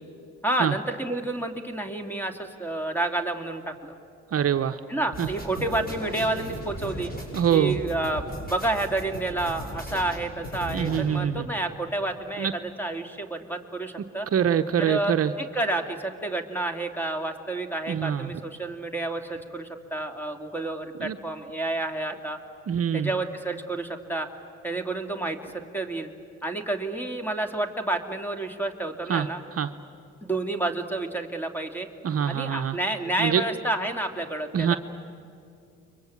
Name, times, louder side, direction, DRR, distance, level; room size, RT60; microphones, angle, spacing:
voice 1, 0.4-4.0 4.9-7.1 7.5-14.3 14.8-22.4 22.9-24.3 24.6-26.1 26.4-29.4 30.2-31.9 32.3-34.8, right 2 dB, 5° left, 5 dB, 2.6 m, -30 dB
voice 2, 4.3-4.8 5.2-5.3 7.3-7.8 10.7-11.5 12.4-12.5 14.3-15.3 17.9-18.3 21.0-21.2 22.7-23.1 29.1-29.3 29.6-29.7 32.0-32.8 33.2-33.4 34.5-34.7, right 8 dB, 50° right, 8 dB, 0.9 m, -24 dB
sound 1, 5.1-11.0, equal, 30° left, 7.7 m, -37 dB
29.5 x 23.5 x 8.6 m, 2.5 s
cardioid pair, 90°, 30 cm